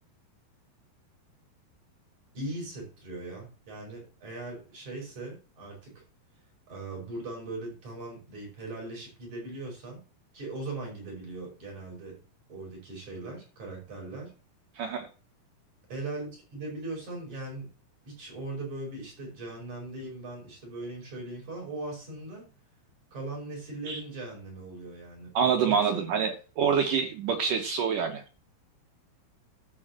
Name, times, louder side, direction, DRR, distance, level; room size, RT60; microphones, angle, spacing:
voice 1, 2.3-6.0 6.7-10.0 10.3-12.2 12.5-14.3 15.9-17.7 18.0-22.5 23.1-25.3 25.6-26.1, right 2 dB, 45° right, -1 dB, 6.8 m, -39 dB
voice 2, 14.8-15.1 23.9-24.0 25.3-28.2, right 7 dB, 65° right, 4 dB, 2.3 m, -26 dB
12.0 x 5.1 x 7.5 m, 0.36 s
omnidirectional pair, 4.9 m